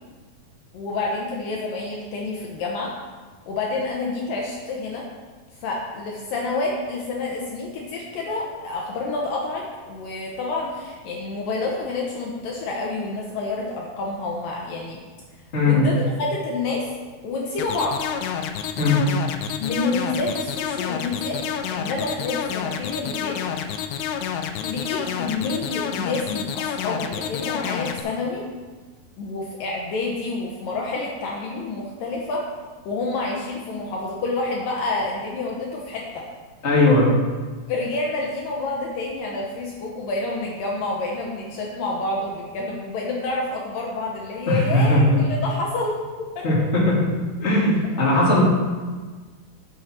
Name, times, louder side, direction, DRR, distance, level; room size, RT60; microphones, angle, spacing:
voice 1, 0.7-2.9 3.5-5.1 5.6-15.0 15.6-16.9 17.2-18.0 19.6-21.4 21.7-23.5 24.6-28.4 29.2-32.5 32.9-36.3 37.7-46.4, left 3 dB, 70° left, -2 dB, 2.6 m, -28 dB
voice 2, 15.5-15.9 18.8-19.0 36.6-37.1 44.5-45.2 46.4-47.0 47.4-48.4, left 2 dB, 20° left, -6 dB, 2.4 m, -18 dB
sound 1, 17.6-28.0, left 8 dB, 90° left, 2.7 m, -29 dB
11.0 x 7.3 x 4.5 m, 1.4 s
omnidirectional pair, 4.5 m